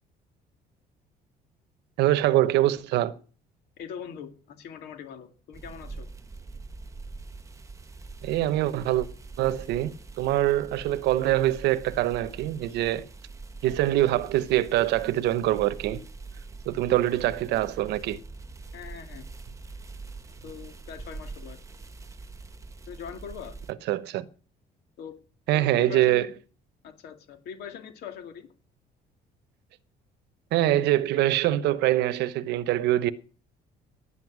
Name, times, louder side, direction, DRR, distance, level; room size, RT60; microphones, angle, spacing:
voice 1, 2.0-3.2 8.2-9.1 9.4-13.1 13.6-16.0 16.7-18.2 23.9-24.3 25.5-26.3 30.5-33.1, right 14 dB, 80° right, 1.0 m, -24 dB
voice 2, 3.8-6.1 18.7-19.3 20.3-21.6 22.9-23.6 25.0-25.1 25.5-26.3 26.8-28.5, left 7 dB, 75° left, 2.3 m, -42 dB
sound 1, 5.5-23.7, right 3 dB, 20° right, 1.2 m, -43 dB
11.5 x 9.8 x 6.2 m
cardioid pair, 110°, 17 cm